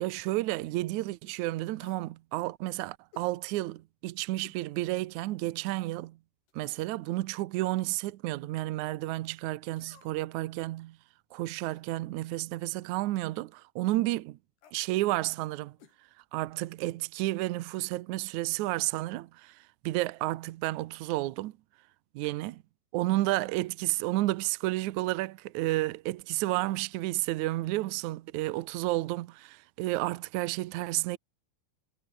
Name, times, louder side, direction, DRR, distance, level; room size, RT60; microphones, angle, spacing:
voice 1, 0.0-6.2 6.5-11.0 11.3-14.4 14.7-15.8 16.3-19.6 19.8-21.5 22.1-22.6 22.9-31.2, right 18 dB, 90° right, 1.6 m, -31 dB
sound 1, 1.8-2.2 3.1-3.3 4.4-4.7 5.1-5.2 6.5-6.9 7.8-8.1 9.8-10.3 11.5-11.9 13.2-13.4 14.6-14.8 15.8-16.0 16.2-16.3, left 8 dB, 85° left, 5.4 m, -58 dB
omnidirectional pair, 4.5 m